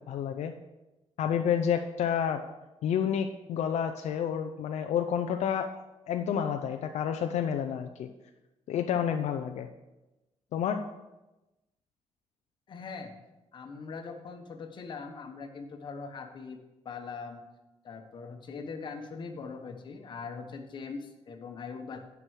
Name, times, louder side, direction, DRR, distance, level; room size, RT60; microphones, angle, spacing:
voice 1, 0.1-0.5 1.2-2.4 2.8-5.7 6.1-8.1 8.7-9.7 10.5-10.8, left 8 dB, 70° left, 6 dB, 0.6 m, -29 dB
voice 2, 12.7-13.1 13.5-16.6 16.8-17.4 17.8-22.1, left 4 dB, 40° left, 5 dB, 1.1 m, -41 dB
9.9 x 6.0 x 6.3 m, 1.0 s
cardioid pair, 180°, 12 cm